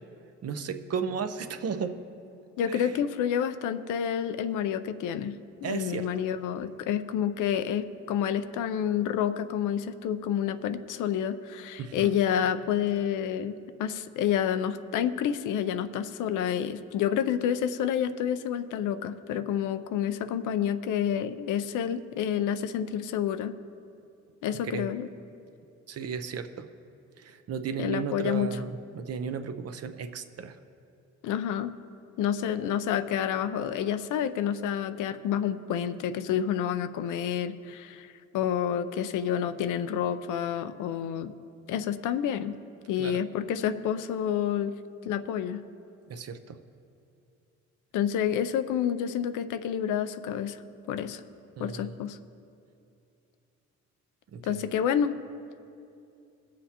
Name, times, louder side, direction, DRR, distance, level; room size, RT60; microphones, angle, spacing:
voice 1, 0.4-2.0 2.7-3.0 5.6-6.1 11.8-12.1 24.7-24.9 25.9-26.7 27.2-30.6 43.0-43.2 46.1-46.6 51.6-51.9 54.3-54.7, right 6 dB, 55° right, 9 dB, 0.7 m, -34 dB
voice 2, 2.6-5.3 5.6-23.5 24.4-25.1 27.8-28.5 31.2-31.7 32.2-41.3 41.7-42.6 42.9-44.7 45.0-45.6 47.9-50.6 50.9-51.2 51.6-52.2 54.5-55.2, left 9 dB, 85° left, 11 dB, 0.6 m, -29 dB
20.5 x 7.5 x 2.9 m, 2.6 s
cardioid pair, 90°, 30 cm